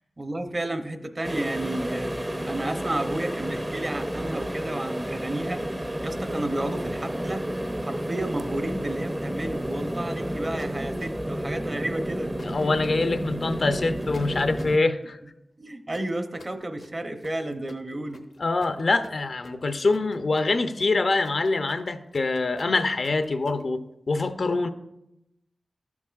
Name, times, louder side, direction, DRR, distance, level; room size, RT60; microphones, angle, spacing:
voice 1, 0.2-5.8 6.0-7.4 7.8-12.3 15.6-18.2, right 1 dB, 40° right, 7 dB, 0.8 m, -32 dB
sound 1, 1.2-14.8, equal, 15° right, 0.5 m, -31 dB
sound 2, 10.6-11.4 12.4-13.0 14.1-14.8 15.9-23.6, left 3 dB, 85° left, 0.9 m, -46 dB
voice 2, 12.4-15.2 18.4-24.7, left 3 dB, 70° left, 9 dB, 0.6 m, -25 dB
12.0 x 7.1 x 2.4 m, 0.88 s
cardioid pair, 45°, 0 cm